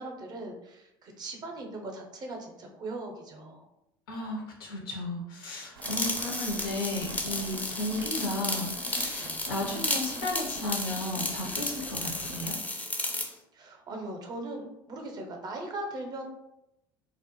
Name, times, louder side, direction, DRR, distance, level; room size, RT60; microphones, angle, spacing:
voice 1, 0.0-3.7 9.2-9.4 13.5-16.2, right 2 dB, 35° right, 2 dB, 0.6 m, -39 dB
voice 2, 4.1-12.6, left 2 dB, 75° left, -1 dB, 0.7 m, -34 dB
Rain, 5.7-12.5, right 2 dB, 80° right, 0.4 m, -44 dB
sound 1, 5.8-13.3, left 2 dB, 10° left, 0.4 m, -33 dB
2.1 x 2.0 x 2.9 m, 0.85 s
hypercardioid pair, 70°, 12 cm